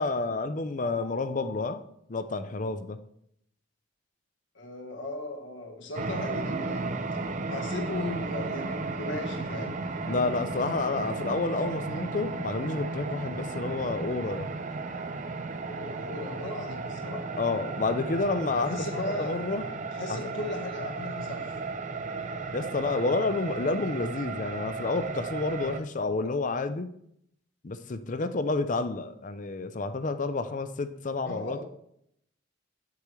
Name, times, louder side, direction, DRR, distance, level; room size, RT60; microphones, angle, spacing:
voice 1, 0.0-1.8 2.1-3.0 10.1-14.5 17.4-18.7 19.2-19.8 20.1-20.2 22.5-26.9 27.6-31.6, left 3 dB, 40° left, 11 dB, 0.5 m, -29 dB
voice 2, 4.5-7.0 7.5-9.7 15.7-17.3 18.6-19.3 19.9-21.6 31.2-31.6, left 2 dB, 70° left, 2 dB, 1.3 m, -37 dB
sound 1, 5.9-25.8, right 3 dB, 40° right, 0.5 m, -34 dB
8.4 x 8.2 x 3.1 m, 0.71 s
head